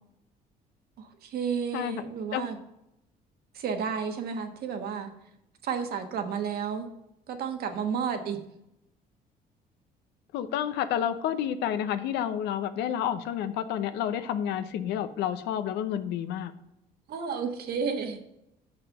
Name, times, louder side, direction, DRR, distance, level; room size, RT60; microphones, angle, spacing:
voice 1, 1.0-2.6 3.5-5.1 5.6-6.9 7.3-8.4 17.1-18.2, right 6 dB, 65° right, 5 dB, 1.4 m, -31 dB
voice 2, 1.7-2.0 2.3-2.4 10.3-16.5, left 10 dB, 85° left, 11 dB, 0.7 m, -30 dB
6.1 x 5.7 x 6.6 m, 0.83 s
cardioid pair, 110°, 17 cm